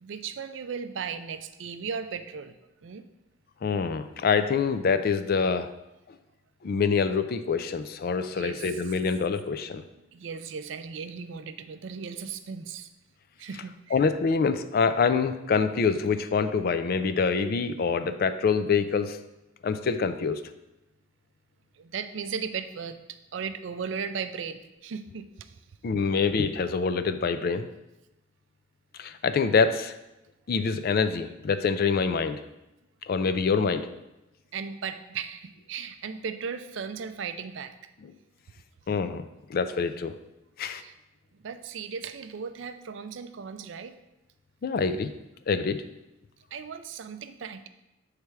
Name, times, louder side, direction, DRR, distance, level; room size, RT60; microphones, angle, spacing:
voice 1, 0.0-2.5 2.8-3.0 8.3-9.0 10.1-12.9 13.4-13.9 21.7-25.6 34.5-37.8 40.8-41.0 41.3-44.0 46.5-47.7, right 6 dB, 65° right, 10 dB, 0.4 m, -36 dB
voice 2, 3.6-5.7 6.6-9.8 13.9-19.2 19.6-20.4 25.8-27.7 29.0-30.0 30.5-32.4 33.1-33.9 38.9-39.2 39.5-40.1 40.6-40.8 44.6-45.1 45.5-45.8, left 5 dB, 50° left, 11 dB, 0.3 m, -25 dB
6.9 x 3.3 x 4.6 m, 0.93 s
head